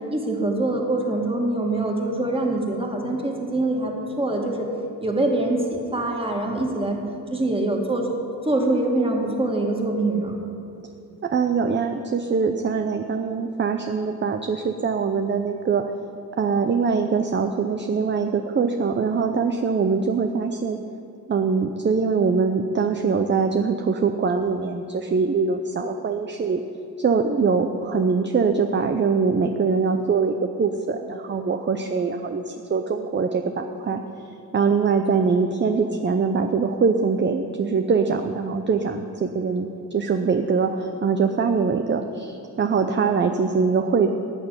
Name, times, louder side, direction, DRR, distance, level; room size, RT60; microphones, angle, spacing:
voice 1, 0.1-4.7 5.0-7.0 7.3-8.1 8.4-10.4, right 2 dB, 15° right, 0 dB, 2.2 m, -24 dB
voice 2, 11.2-15.8 16.4-20.8 21.3-26.6 27.0-34.0 34.5-44.1, right 5 dB, 30° right, 6 dB, 0.7 m, -23 dB
16.0 x 6.7 x 9.6 m, 2.6 s
cardioid pair, 120°, 36 cm